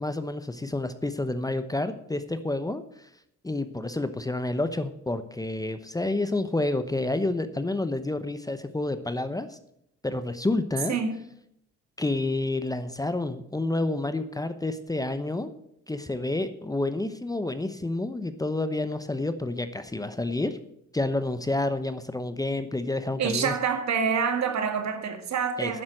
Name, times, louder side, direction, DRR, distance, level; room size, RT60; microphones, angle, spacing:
voice 1, 0.0-3.1 3.4-9.6 10.0-11.0 12.0-15.5 15.9-20.6 20.9-23.5 25.6-25.7, left 2 dB, 10° left, 0.9 m, -29 dB
voice 2, 23.2-25.8, right 6 dB, 65° right, 2.1 m, -27 dB
11.0 x 7.4 x 7.7 m
cardioid pair, 90°, 30 cm